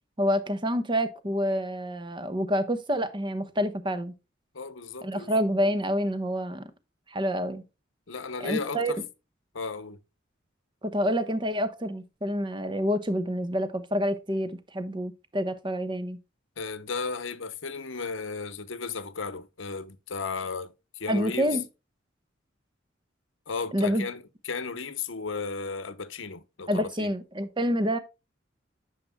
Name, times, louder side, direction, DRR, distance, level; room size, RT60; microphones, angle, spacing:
voice 1, 0.2-4.1 5.0-6.7 7.1-7.6 8.4-8.9 10.9-16.2 21.1-21.6 23.7-24.1 26.7-28.0, equal, 25° right, 1.0 m, -27 dB
voice 2, 4.5-5.3 8.1-9.0 9.5-10.0 16.6-20.7 21.0-21.6 23.5-27.1, left 4 dB, 90° left, 0.9 m, -34 dB
9.5 x 6.5 x 2.2 m
head